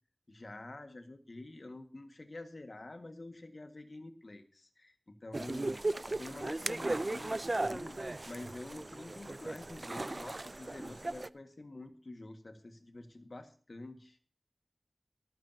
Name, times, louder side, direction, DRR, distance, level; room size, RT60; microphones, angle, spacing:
voice 1, 0.3-14.2, left 2 dB, 65° left, 7 dB, 1.7 m, -48 dB
sound 1, 5.3-11.3, right 2 dB, 50° right, 0.4 m, -37 dB
24.0 x 9.0 x 2.8 m, 0.41 s
wide cardioid pair, 45°, 0 cm